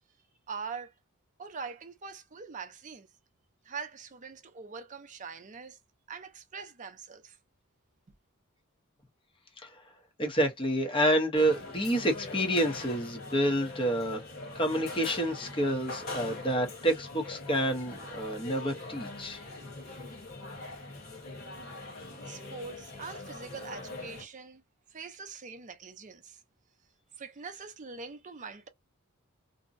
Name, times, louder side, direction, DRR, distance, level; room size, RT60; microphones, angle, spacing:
voice 1, 0.5-0.9 1.4-3.1 3.6-5.8 6.1-7.4 22.2-24.6 24.9-26.4 27.2-28.7, right 5 dB, 35° right, 0.5 m, -43 dB
voice 2, 10.2-14.2 14.5-19.4, right 1 dB, 25° left, 0.8 m, -28 dB
sound 1, 11.3-24.2, left 2 dB, 45° left, 1.2 m, -42 dB
2.6 x 2.1 x 2.5 m
head